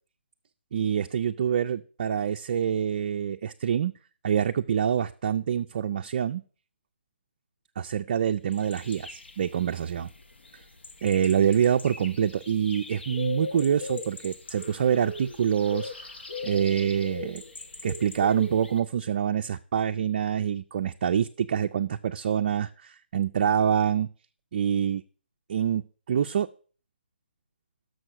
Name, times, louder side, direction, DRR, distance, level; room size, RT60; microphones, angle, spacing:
voice 1, 0.7-3.9 4.2-6.4 7.8-10.1 11.0-15.9 16.4-17.4 17.8-24.1 24.5-25.0 25.5-26.5, right 8 dB, 45° right, 6 dB, 0.4 m, -26 dB
sound 1, 8.5-18.8, left 3 dB, 75° left, 1.2 m, -40 dB
6.5 x 6.3 x 6.2 m, 0.41 s
figure-of-eight pair, 150°, 6 cm